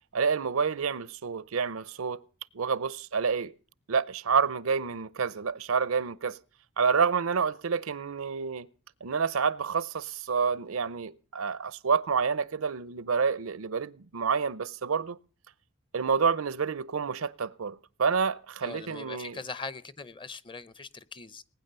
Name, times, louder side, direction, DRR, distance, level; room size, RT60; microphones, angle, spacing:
voice 1, 0.1-2.2 2.5-3.5 3.9-6.4 6.8-8.7 9.0-15.2 15.9-19.4, right 5 dB, 85° right, 0.7 m, -28 dB
voice 2, 18.6-21.4, left 4 dB, 25° left, 0.7 m, -41 dB
19.5 x 9.4 x 6.7 m
head